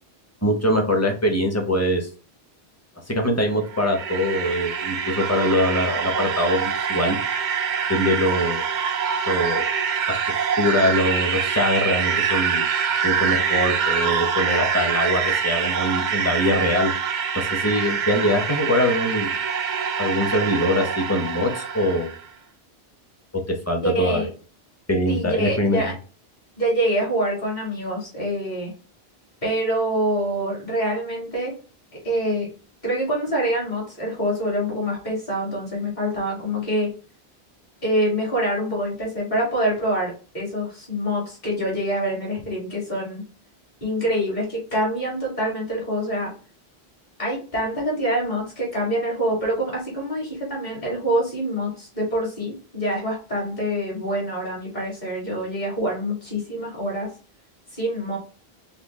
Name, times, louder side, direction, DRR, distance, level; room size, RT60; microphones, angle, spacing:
voice 1, 0.4-2.1 3.1-7.2 7.9-8.6 9.3-9.7 10.1-10.2 10.6-12.7 13.0-16.9 17.3-19.3 20.0-22.1 23.3-24.3 24.9-25.8, left 1 dB, 15° left, 2 dB, 0.8 m, -23 dB
sound 1, 3.5-22.2, right 7 dB, 55° right, 0.6 m, -25 dB
voice 2, 23.8-24.3 25.1-25.9 26.6-28.7 29.4-31.5 32.0-32.5 32.8-36.9 37.8-43.2 43.8-46.3 47.2-57.1 57.7-58.2, equal, 45° left, -4 dB, 2.4 m, -25 dB
5.5 x 2.2 x 3.6 m, 0.37 s
omnidirectional pair, 1.0 m